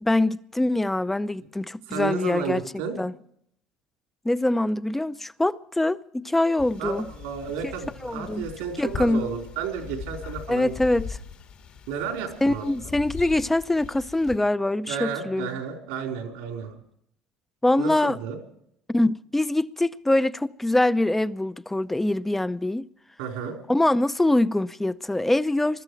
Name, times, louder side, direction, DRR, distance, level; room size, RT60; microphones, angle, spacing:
voice 1, 0.0-2.6 3.0-3.1 4.2-7.1 7.6-7.7 8.0-8.5 8.8-9.2 10.5-11.1 12.4-15.5 17.6-18.2 18.9-22.8 23.7-25.8, left 1 dB, 10° left, 0.6 m, -24 dB
voice 2, 1.9-3.0 6.8-10.7 11.9-12.9 14.9-16.8 17.8-18.4 23.2-23.6, right 6 dB, 85° right, 4.0 m, -32 dB
sound 1, 6.6-14.4, left 7 dB, 60° left, 1.9 m, -40 dB
21.5 x 13.0 x 4.7 m
supercardioid pair, 90°, 2 cm